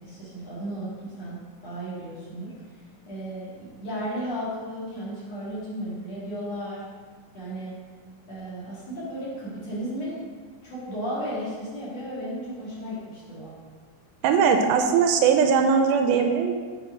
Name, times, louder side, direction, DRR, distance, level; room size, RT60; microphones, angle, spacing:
voice 1, 0.0-2.5 3.1-6.8 7.3-7.7 8.3-10.2 10.6-13.5, equal, 45° left, -8 dB, 3.2 m, -34 dB
voice 2, 14.2-16.5, right 6 dB, 80° right, 5 dB, 2.4 m, -20 dB
8.5 x 6.1 x 4.4 m, 1.5 s
omnidirectional pair, 4.4 m